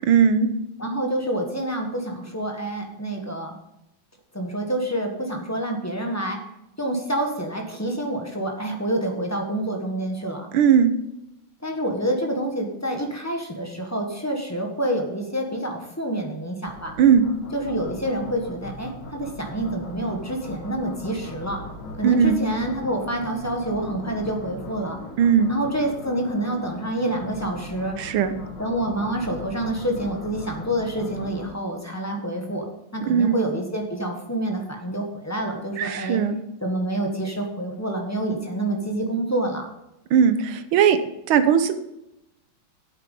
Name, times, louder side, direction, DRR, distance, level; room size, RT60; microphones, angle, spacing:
voice 1, 0.0-0.5 10.5-10.9 17.0-17.2 22.0-22.4 25.2-25.5 28.0-28.3 33.1-33.4 35.8-36.4 40.1-41.0 41.3-41.7, right 7 dB, 90° right, 11 dB, 1.7 m, -18 dB
voice 2, 0.8-3.5 4.3-6.4 6.8-10.5 11.6-17.0 17.5-21.6 22.0-25.0 25.5-28.0 28.6-32.7 32.9-36.2 36.6-39.7, right 1 dB, 10° left, 2 dB, 1.2 m, -27 dB
sound 1, 16.6-31.5, left 2 dB, 60° left, 2.1 m, -39 dB
8.9 x 8.0 x 5.5 m, 0.87 s
omnidirectional pair, 2.2 m